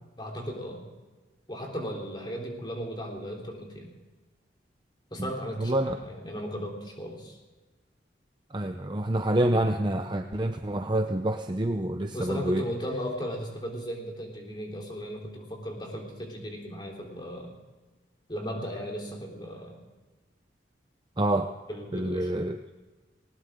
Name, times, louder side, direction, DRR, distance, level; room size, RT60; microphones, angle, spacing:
voice 1, 0.2-0.8 1.5-3.9 5.1-7.4 12.1-17.5 18.3-19.8 21.7-22.3, equal, 25° left, 0 dB, 3.7 m, -36 dB
voice 2, 5.6-6.0 8.5-12.6 21.2-21.5 21.9-22.6, right 1 dB, 25° right, 5 dB, 0.7 m, -27 dB
20.0 x 19.0 x 3.8 m, 1.2 s
head